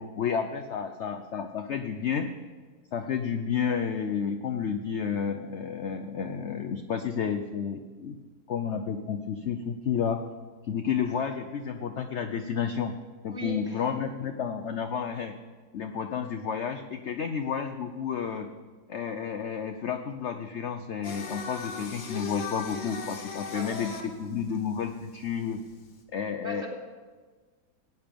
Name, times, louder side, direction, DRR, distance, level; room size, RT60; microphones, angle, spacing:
voice 1, 0.0-2.3 2.9-8.1 8.5-10.2 10.7-12.9 13.2-15.3 15.7-18.5 18.9-25.6 26.1-26.7, left 7 dB, 65° left, 6 dB, 0.7 m, -31 dB
voice 2, 13.3-13.9 23.5-23.9 26.4-26.7, left 1 dB, 30° right, -2 dB, 3.2 m, -38 dB
Singing, 21.0-26.0, left 4 dB, 90° left, 2.1 m, -39 dB
17.5 x 9.6 x 5.2 m, 1.4 s
omnidirectional pair, 1.9 m